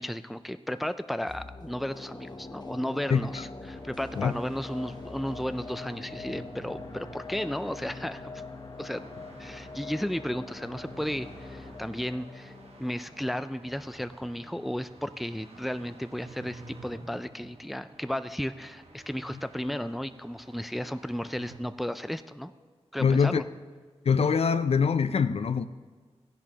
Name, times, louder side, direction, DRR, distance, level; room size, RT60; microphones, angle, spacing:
voice 1, 0.0-8.4 8.8-9.0 9.4-12.5 12.8-22.5 22.9-23.5, equal, ahead, 0.3 m, -34 dB
sound 1, 1.3-14.4 14.7-14.8, left 3 dB, 40° left, 0.7 m, -43 dB
sound 2, 3.7-21.6, right 2 dB, 70° right, 1.2 m, -51 dB
voice 2, 23.0-23.4 24.1-25.7, left 6 dB, 65° left, 0.4 m, -23 dB
15.0 x 10.5 x 2.9 m
wide cardioid pair, 90°, 11 cm